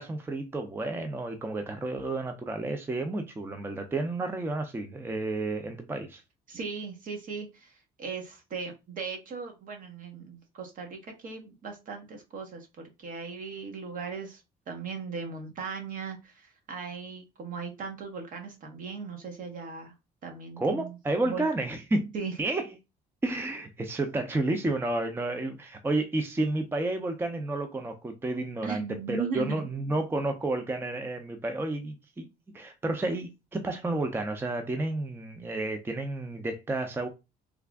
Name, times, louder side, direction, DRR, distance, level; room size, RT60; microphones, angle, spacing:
voice 1, 0.0-6.2 20.6-22.1 22.4-22.6 23.2-32.3 32.5-37.1, right 2 dB, 15° right, 0.5 m, -31 dB
voice 2, 6.5-19.9 20.2-20.9 21.2-21.5 22.1-22.3 28.6-29.7, right 5 dB, 55° right, 1.2 m, -38 dB
3.4 x 2.4 x 3.4 m
cardioid pair, 110°, 17 cm